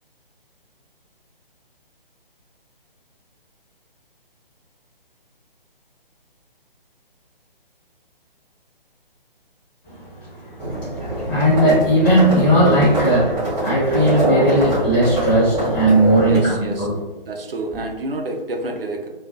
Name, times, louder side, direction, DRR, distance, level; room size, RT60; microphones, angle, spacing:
voice 1, 9.8-16.9, right 1 dB, 20° left, -10 dB, 1.0 m, -18 dB
Livestock farm animals working animals, 10.6-16.4, right 1 dB, 5° right, 0.6 m, -24 dB
voice 2, 16.3-16.9 17.3-19.1, right 2 dB, 75° right, 3 dB, 0.5 m, -28 dB
2.3 x 2.3 x 2.5 m, 1.1 s
figure-of-eight pair, 140°, 29 cm